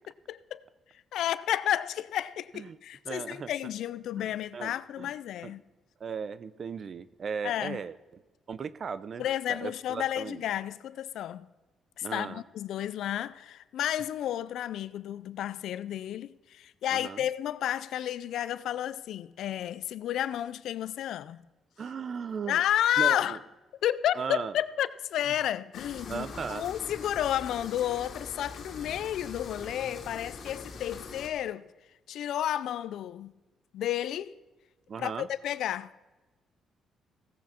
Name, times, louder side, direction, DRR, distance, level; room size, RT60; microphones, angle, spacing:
voice 1, 0.3-0.6 1.1-5.6 7.4-7.8 9.2-11.5 12.0-21.4 22.5-23.4 23.8-31.7 32.1-33.3 33.7-34.3 35.0-35.9, left 11 dB, 75° left, 0.5 m, -31 dB
voice 2, 3.1-3.5 4.2-5.1 5.4-5.5 6.0-8.0 8.5-10.4 12.0-12.4 16.9-17.2 21.8-22.6 23.0-23.4 24.1-24.5 26.1-26.7 34.9-35.3, right 6 dB, 50° right, 0.6 m, -37 dB
sound 1, 25.7-31.3, left 4 dB, 60° left, 2.1 m, -43 dB
16.5 x 8.3 x 4.4 m
cardioid pair, 90°, 0 cm